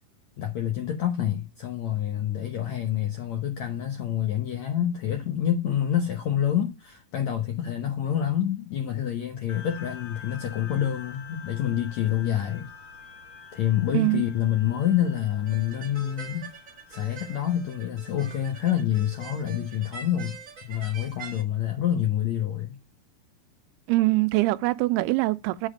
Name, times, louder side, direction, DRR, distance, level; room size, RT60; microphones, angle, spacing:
voice 1, 0.4-12.7 13.5-16.5 16.9-20.4 20.6-22.8, left 10 dB, 75° left, 1.6 m, -27 dB
sound 1, 9.5-20.4, left 6 dB, 55° left, 1.3 m, -48 dB
sound 2, 15.5-21.4, right 5 dB, 35° right, 1.2 m, -44 dB
voice 2, 23.9-25.7, right 20 dB, 85° right, 2.6 m, -23 dB
8.1 x 4.0 x 6.3 m
omnidirectional pair, 4.6 m